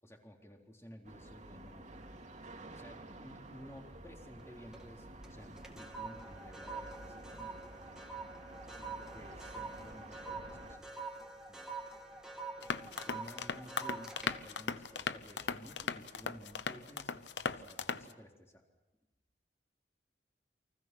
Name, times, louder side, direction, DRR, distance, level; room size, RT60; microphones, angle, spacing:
voice 1, 0.0-1.9 2.7-8.0 8.7-11.1 11.5-11.7 12.6-18.6, equal, 15° left, 1 dB, 3.8 m, -54 dB
sound 1, 1.0-10.8, right 2 dB, 45° right, 3.1 m, -51 dB
sound 2, 4.4-4.9 5.2-15.8 16.2-16.5, right 4 dB, 5° right, 2.7 m, -46 dB
sound 3, 12.6-18.1, left 5 dB, 90° left, 0.9 m, -38 dB
30.0 x 24.5 x 6.2 m, 1.1 s
head